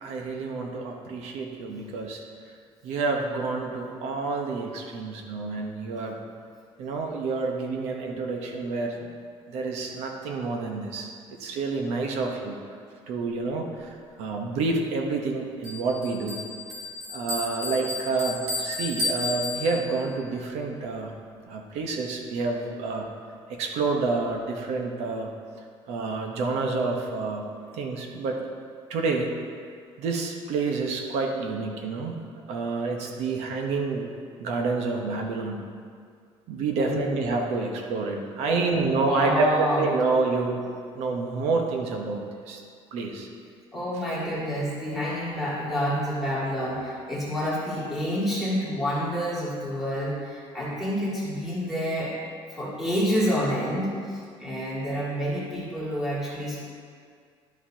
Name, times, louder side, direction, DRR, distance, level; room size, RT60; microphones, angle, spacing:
voice 1, 0.0-2.2 2.8-6.2 6.8-9.0 9.5-11.1 11.4-12.6 13.1-13.9 14.2-16.4 17.1-21.1 21.5-23.1 23.5-25.3 25.9-27.4 27.7-28.4 28.9-29.3 30.0-32.2 32.5-34.1 34.4-35.6 36.5-40.6 40.9-42.6 42.9-43.3, right 3 dB, 90° right, 2 dB, 1.1 m, -28 dB
Bell, 15.6-20.1, left 3 dB, 55° right, 2.1 m, -33 dB
voice 2, 36.8-37.2 38.5-40.0 43.7-52.2 52.5-56.6, equal, ahead, -9 dB, 2.2 m, -28 dB
11.5 x 6.1 x 2.8 m, 2.1 s
cardioid pair, 180°, 11 cm